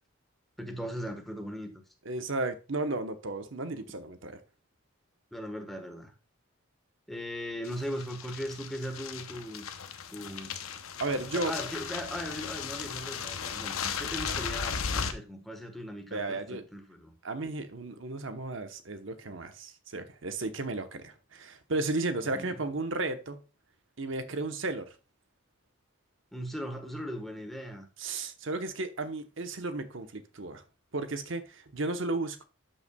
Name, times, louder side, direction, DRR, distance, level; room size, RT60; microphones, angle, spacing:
voice 1, 0.6-1.7 5.3-6.1 7.1-9.7 10.1-10.5 11.3-17.1 22.3-22.6 26.3-27.9, equal, ahead, 1.2 m, -38 dB
voice 2, 2.0-4.4 11.0-11.5 16.1-16.6 17.2-23.4 24.0-24.9 28.0-30.6 30.9-32.4, right 2 dB, 60° right, 1.0 m, -34 dB
sound 1, 7.6-15.1, left 6 dB, 80° left, 0.8 m, -36 dB
12.0 x 5.6 x 2.3 m
head